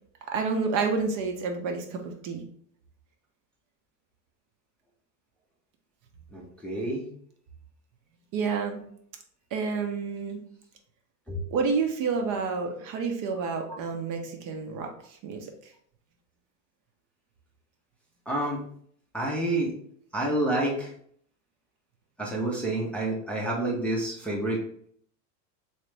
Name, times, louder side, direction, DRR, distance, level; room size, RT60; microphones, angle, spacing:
voice 1, 0.3-2.4 8.3-8.8 9.5-10.4 11.5-15.7, right 5 dB, 40° right, 4 dB, 0.7 m, -29 dB
voice 2, 6.3-7.1 11.3-11.4 13.7-13.8 18.3-18.7 19.1-19.7 20.1-20.9 22.2-24.6, right 1 dB, 5° left, -4 dB, 0.6 m, -28 dB
3.2 x 3.0 x 3.2 m, 0.62 s
hypercardioid pair, 110°, 48 cm